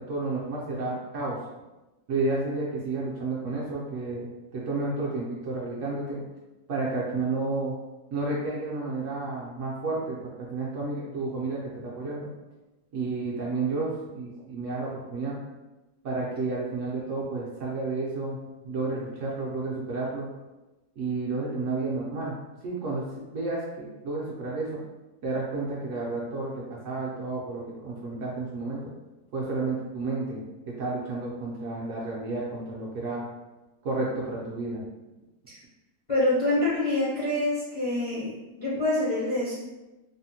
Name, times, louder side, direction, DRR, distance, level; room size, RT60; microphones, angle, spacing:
voice 1, 0.0-1.4 2.1-6.2 6.7-7.7 8.1-12.3 12.9-15.4 16.0-18.4 18.6-20.3 21.0-22.4 22.6-23.0 23.3-24.8 25.2-28.9 29.3-30.4 30.8-33.2 33.8-34.8, right 3 dB, 65° right, -5 dB, 0.8 m, -31 dB
voice 2, 36.1-39.6, left 1 dB, 40° left, -9 dB, 0.4 m, -26 dB
3.4 x 2.1 x 2.7 m, 1.1 s
omnidirectional pair, 1.7 m